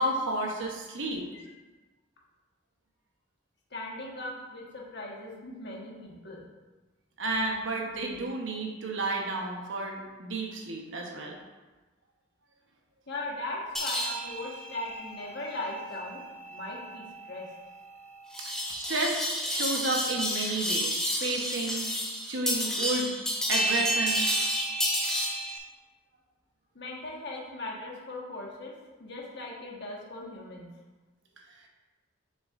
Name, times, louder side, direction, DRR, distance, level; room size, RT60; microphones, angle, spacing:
voice 1, 0.0-1.2 7.2-11.3 18.4-18.6 18.9-21.9 22.3-23.1 23.5-24.3, right 2 dB, 65° right, 0 dB, 1.0 m, -31 dB
voice 2, 3.7-6.4 13.1-16.2 16.5-17.5 26.7-28.7 29.0-30.7, left 2 dB, 55° left, -3 dB, 1.3 m, -39 dB
sound 1, 13.7-25.6, equal, 5° left, 0.8 m, -31 dB
6.8 x 6.6 x 2.5 m, 1.2 s
head